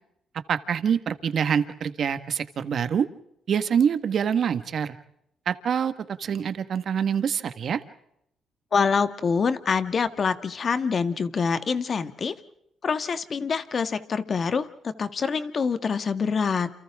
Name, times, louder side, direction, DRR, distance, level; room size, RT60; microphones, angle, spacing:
voice 1, 0.5-3.1 3.5-4.9 5.4-5.9 6.2-7.8, right 7 dB, 60° right, 11 dB, 1.6 m, -25 dB
voice 2, 8.7-12.4 12.8-16.7, left 5 dB, 45° left, 10 dB, 1.7 m, -25 dB
29.5 x 28.5 x 3.7 m, 0.76 s
cardioid pair, 90°, 0 cm